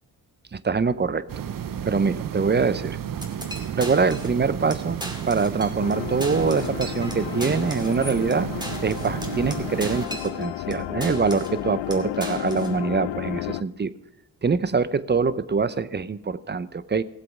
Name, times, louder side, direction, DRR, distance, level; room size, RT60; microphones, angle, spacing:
voice 1, 0.5-1.2 1.9-3.0 3.8-5.0 5.3-8.5 8.8-13.9 14.4-17.0, right 5 dB, 25° right, 16 dB, 0.6 m, -24 dB
sound 1, 1.3-10.1, right 9 dB, 55° right, 0.8 m, -32 dB
sound 2, 3.2-4.4 4.7-4.8 5.0-5.9 6.2-10.7 11.0-11.6 11.9-12.7, right 1 dB, 10° right, 2.5 m, -37 dB
sound 3, 5.8-13.6, left 15 dB, 90° left, 0.5 m, -32 dB
16.5 x 7.7 x 6.0 m, 0.96 s
cardioid pair, 70°, 41 cm